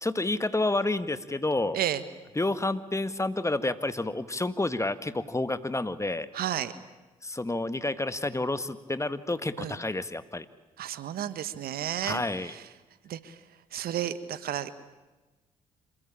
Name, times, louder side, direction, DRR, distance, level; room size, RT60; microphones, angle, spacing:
voice 1, 0.0-1.8 2.4-6.3 7.2-10.5 12.0-12.5, left 2 dB, 20° left, 12 dB, 1.7 m, -29 dB
voice 2, 6.3-6.7 9.6-9.8 10.8-12.7 13.0-13.4 13.7-14.7, right 11 dB, 65° right, 14 dB, 1.5 m, -32 dB
26.5 x 22.5 x 8.7 m, 1.2 s
hypercardioid pair, 45°, 17 cm